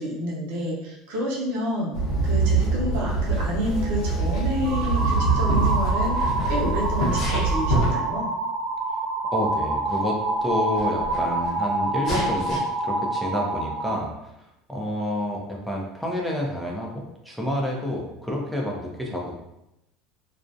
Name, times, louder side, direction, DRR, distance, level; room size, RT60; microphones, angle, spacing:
voice 1, 0.0-2.0 2.2-8.3, equal, 80° right, -4 dB, 0.7 m, -29 dB
Walk footsteps / Chatter / Hiss, 1.9-7.9, right 3 dB, 65° left, 0.8 m, -24 dB
Sneeze, 4.6-5.6 6.0-6.6 7.1-7.7 8.6-8.7 9.6-9.7 9.9-10.0 10.4-11.5 12.0-12.6, left 2 dB, 40° left, 0.9 m, -34 dB
sound 1, 4.6-14.0, right 2 dB, 60° right, 0.3 m, -27 dB
voice 2, 9.3-14.4 14.7-19.3, left 1 dB, ahead, -2 dB, 0.5 m, -29 dB
2.4 x 2.0 x 2.6 m, 0.86 s
supercardioid pair, 120°, 0 cm